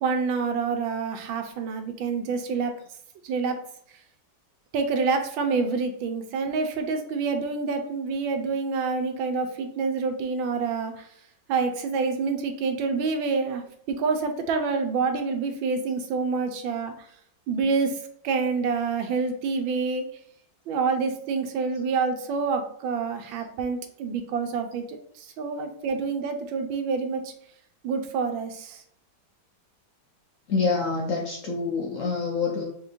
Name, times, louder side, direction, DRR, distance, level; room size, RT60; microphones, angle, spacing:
voice 1, 0.0-2.7 3.2-3.6 4.7-11.1 11.5-16.9 17.5-18.0 18.2-20.0 20.7-27.3 27.8-28.8, right 4 dB, 90° right, 6 dB, 1.4 m, -27 dB
voice 2, 30.5-32.6, left 4 dB, 65° left, -1 dB, 0.8 m, -26 dB
4.3 x 3.7 x 2.5 m, 0.66 s
omnidirectional pair, 2.1 m